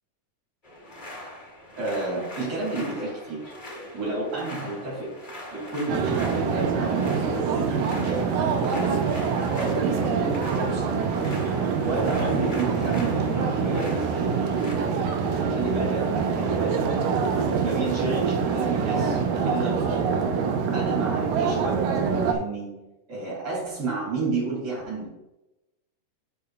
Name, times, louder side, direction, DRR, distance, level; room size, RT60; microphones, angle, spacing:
sound 1, 0.6-14.7, left 1 dB, 25° left, 1.0 m, -42 dB
voice 1, 1.8-3.4 3.9-5.1 5.5-8.6 9.5-11.0 11.8-14.4 15.5-16.9 17.4-19.2 19.4-20.2 20.7-21.9 22.3-25.1, right 3 dB, 30° right, -7 dB, 3.3 m, -31 dB
sound 2, 5.9-22.3, right 5 dB, 80° right, 2.6 m, -25 dB
11.0 x 6.9 x 2.5 m, 0.95 s
omnidirectional pair, 3.9 m